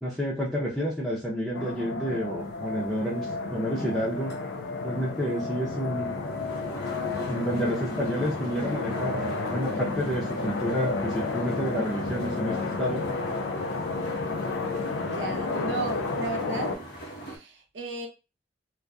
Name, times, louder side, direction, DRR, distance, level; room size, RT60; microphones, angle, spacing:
voice 1, 0.0-4.3 4.8-6.1 7.3-9.2 9.5-13.0, equal, ahead, -8 dB, 0.5 m, -29 dB
sound 1, 1.5-16.7, left 3 dB, 85° left, 0.4 m, -31 dB
sound 2, 2.5-17.4, right 1 dB, 55° left, 0.9 m, -43 dB
voice 2, 14.9-18.1, right 3 dB, 75° right, 2 dB, 0.6 m, -35 dB
2.5 x 2.2 x 2.2 m, 0.31 s
head